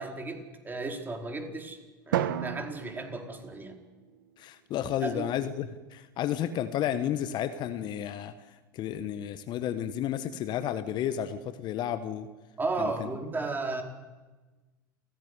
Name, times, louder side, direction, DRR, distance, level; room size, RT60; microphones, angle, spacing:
voice 1, 0.0-1.8 2.1-3.8 4.8-5.3 12.6-13.8, right 3 dB, 15° right, 3 dB, 4.7 m, -34 dB
Drum, 2.1-4.4, right 11 dB, 65° right, 1.6 m, -34 dB
voice 2, 4.4-8.3 8.7-12.3 12.8-13.1, left 10 dB, 40° left, 12 dB, 1.3 m, -32 dB
29.0 x 16.5 x 9.9 m, 1.2 s
figure-of-eight pair, 85°, 11 cm